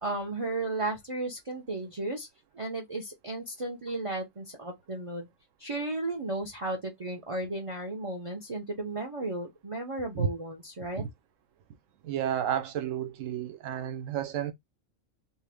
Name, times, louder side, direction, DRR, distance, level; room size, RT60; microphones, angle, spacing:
voice 1, 0.0-2.3 2.5-5.3 5.6-11.0, right 2 dB, 35° right, 0.6 m, -34 dB
voice 2, 12.0-14.5, right 9 dB, 85° right, 1.0 m, -31 dB
2.9 x 2.8 x 3.4 m
omnidirectional pair, 1.3 m